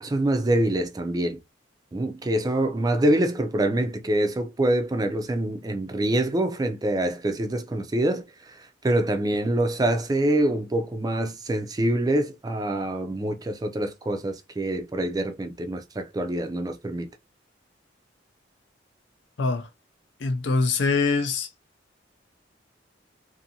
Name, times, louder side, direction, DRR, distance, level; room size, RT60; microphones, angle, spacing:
voice 1, 0.0-1.4 1.9-17.1, right 1 dB, 20° right, 0.4 m, -25 dB
voice 2, 19.4-19.7 20.2-21.5, left 4 dB, 75° left, 0.5 m, -23 dB
2.6 x 2.6 x 2.7 m
head